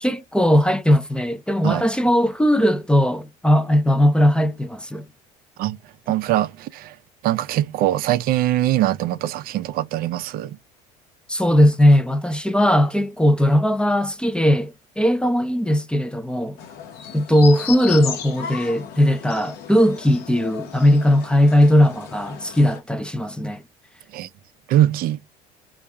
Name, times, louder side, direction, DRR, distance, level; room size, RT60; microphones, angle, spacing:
voice 1, 0.0-5.1 11.3-16.6 17.1-23.6, equal, 5° left, 0.5 m, -18 dB
voice 2, 6.1-7.0 7.2-10.6 24.1-24.3 24.7-25.2, right 13 dB, 55° right, 0.4 m, -22 dB
sound 1, 16.6-22.8, left 8 dB, 65° left, 0.9 m, -35 dB
3.3 x 2.4 x 3.2 m
hypercardioid pair, 80°, 18 cm